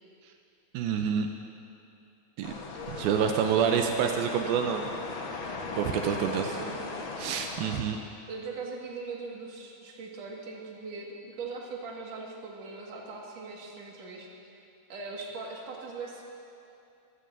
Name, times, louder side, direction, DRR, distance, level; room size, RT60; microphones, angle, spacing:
voice 1, 0.7-1.3 2.4-2.5 2.9-4.8 5.8-6.5 7.2-8.0, right 7 dB, 85° right, 4 dB, 2.5 m, -27 dB
sound 1, 2.4-7.8, left 3 dB, 75° left, 1.1 m, -38 dB
voice 2, 6.4-6.7 8.3-14.3 14.9-16.2, right 4 dB, 50° right, -2 dB, 2.7 m, -40 dB
25.0 x 16.0 x 2.6 m, 2.7 s
omnidirectional pair, 4.2 m